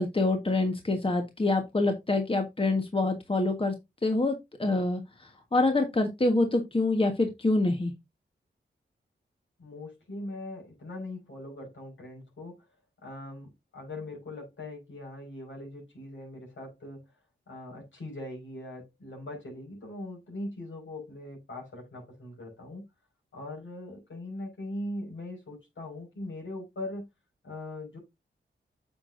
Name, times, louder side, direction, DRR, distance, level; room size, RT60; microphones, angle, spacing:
voice 1, 0.0-3.7 4.0-4.3 4.6-7.9, left 2 dB, 25° left, 1.5 m, -26 dB
voice 2, 9.6-12.7 13.0-17.1 17.5-22.9 23.3-27.1 27.4-28.0, left 1 dB, 75° left, 5.5 m, -41 dB
8.8 x 6.2 x 2.6 m
cardioid pair, 55°, 20 cm